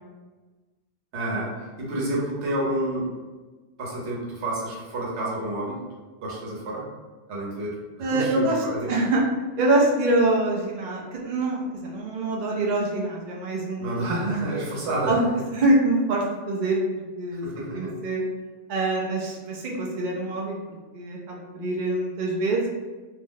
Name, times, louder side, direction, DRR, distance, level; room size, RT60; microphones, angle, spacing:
voice 1, 1.1-3.1 3.8-5.8 6.2-6.8 7.3-9.0 13.8-15.1 17.4-17.9, right 1 dB, 70° right, -5 dB, 1.1 m, -29 dB
voice 2, 8.0-9.2 9.6-14.4 15.1-15.2 15.5-17.4 17.7-18.2 18.7-22.7, right 2 dB, 55° right, -3 dB, 0.6 m, -25 dB
2.7 x 2.0 x 3.8 m, 1.3 s
omnidirectional pair, 1.2 m